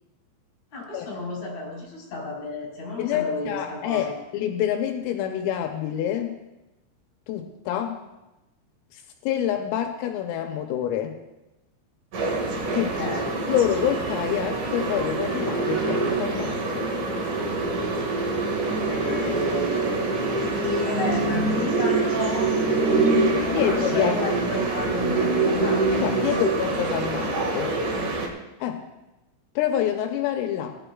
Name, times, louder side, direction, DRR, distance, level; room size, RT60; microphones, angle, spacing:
voice 1, 0.7-4.2 12.7-13.3 18.7-22.5 22.9-26.5 27.9-28.2, left 1 dB, 35° left, -3 dB, 5.1 m, -32 dB
voice 2, 3.0-6.4 7.3-8.0 8.9-11.2 12.7-12.9 13.5-16.9 23.5-24.2 25.9-27.8 28.6-28.8 29.6-30.8, left 10 dB, 85° left, 4 dB, 3.4 m, -27 dB
sound 1, 12.1-28.3, right 3 dB, 55° right, 2.5 m, -25 dB
20.5 x 12.0 x 2.4 m, 0.99 s
omnidirectional pair, 5.9 m